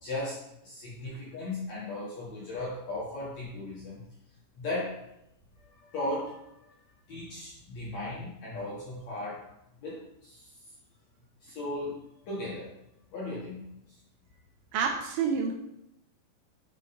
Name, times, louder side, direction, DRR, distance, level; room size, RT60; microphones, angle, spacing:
voice 1, 0.0-4.0 4.5-5.0 5.7-6.4 7.1-9.5 9.8-10.4 11.4-11.9 12.3-12.7 13.1-13.8, left 2 dB, 65° left, -6 dB, 1.7 m, -36 dB
voice 2, 14.7-15.6, right 6 dB, 85° right, 1 dB, 2.9 m, -28 dB
6.4 x 6.2 x 4.2 m, 0.82 s
omnidirectional pair, 5.4 m